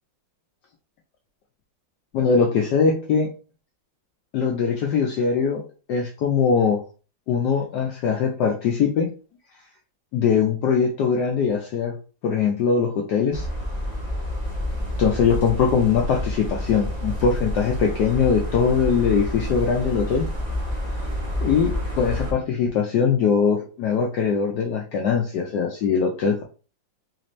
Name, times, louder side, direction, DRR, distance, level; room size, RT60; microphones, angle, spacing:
voice 1, 2.1-3.3 4.3-5.6 5.9-6.8 7.3-9.1 10.1-11.9 12.2-13.5 15.0-20.3 21.4-26.4, left 6 dB, 70° left, 1 dB, 1.1 m, -21 dB
sound 1, 13.3-22.3, left 1 dB, 30° right, 0.9 m, -28 dB
4.2 x 2.6 x 3.0 m, 0.36 s
omnidirectional pair, 2.0 m